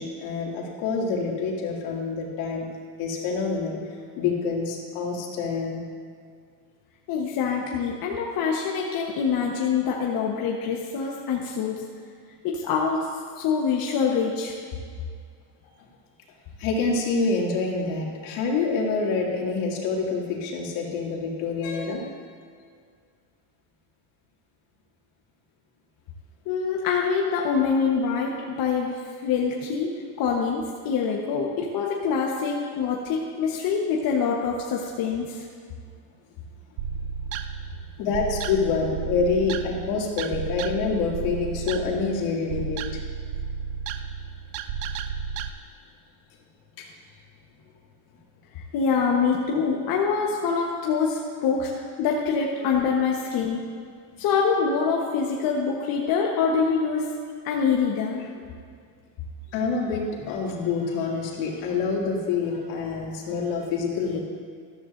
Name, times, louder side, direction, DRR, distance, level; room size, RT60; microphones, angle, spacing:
voice 1, 0.0-2.7 3.0-3.8 4.2-5.8 16.6-22.0 38.0-43.0 46.8-46.9 52.6-52.7 59.5-64.2, left 4 dB, 70° left, -2 dB, 2.6 m, -27 dB
voice 2, 7.1-11.8 12.4-13.1 13.4-14.5 26.5-35.5 48.5-53.6 54.2-57.1 57.4-58.3, left 5 dB, 50° left, -1 dB, 1.2 m, -25 dB
sound 1, 36.8-45.5, right 7 dB, 75° right, 0.8 m, -33 dB
13.5 x 13.0 x 2.6 m, 2.1 s
supercardioid pair, 125°, 46 cm